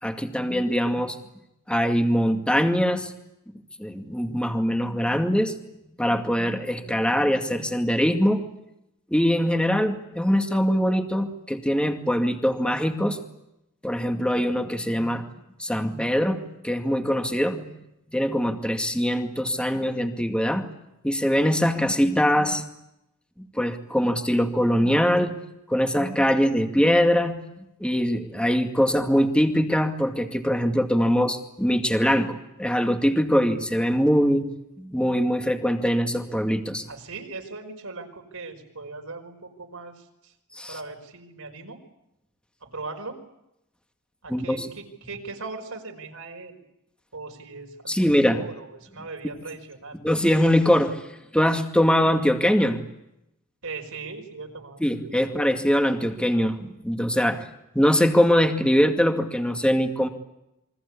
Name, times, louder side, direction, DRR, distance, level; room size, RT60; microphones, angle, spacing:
voice 1, 0.0-1.2 1.7-3.1 3.8-5.5 6.0-8.4 9.1-13.2 13.8-15.2 15.6-17.7 18.1-20.7 21.0-22.7 23.4-25.4 25.7-34.5 34.8-36.8 40.5-40.7 44.3-44.7 47.9-48.4 50.0-51.0 51.3-52.8 54.8-57.5 57.7-60.1, equal, 5° left, 5 dB, 2.1 m, -22 dB
voice 2, 36.8-40.3 40.7-41.8 42.6-43.2 44.2-46.6 47.1-50.0 53.6-54.8 55.1-55.4, right 3 dB, 75° right, 3 dB, 5.2 m, -39 dB
28.5 x 23.5 x 8.6 m, 0.87 s
head